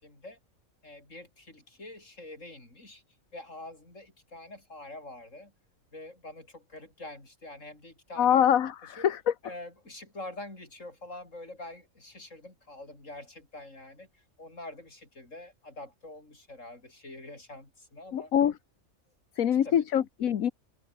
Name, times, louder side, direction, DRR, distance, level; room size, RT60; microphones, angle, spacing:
voice 1, 0.0-0.4 0.8-3.0 3.3-5.5 5.9-8.4 9.0-9.1 9.4-14.1 14.4-18.3 19.5-19.8, left 2 dB, 65° left, 6.7 m, -45 dB
voice 2, 8.2-9.3 18.1-18.5 19.4-20.5, left 9 dB, 80° left, 1.4 m, -24 dB
omnidirectional pair, 1.4 m